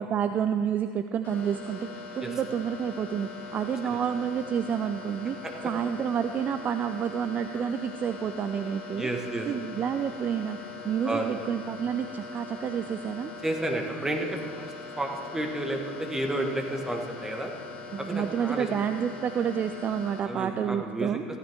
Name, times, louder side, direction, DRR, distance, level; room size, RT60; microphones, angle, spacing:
voice 1, 0.0-5.4 5.6-9.1 9.5-10.6 10.8-13.3 17.9-21.2, right 8 dB, 35° right, 9 dB, 0.5 m, -29 dB
sound 1, 1.2-20.2, left 4 dB, 35° left, 2.8 m, -42 dB
voice 2, 8.9-9.5 11.0-11.3 13.4-17.5 18.0-18.7 20.2-21.2, right 1 dB, 10° right, 2 dB, 1.6 m, -31 dB
15.0 x 10.5 x 3.5 m, 2.4 s
hypercardioid pair, 70°, 5 cm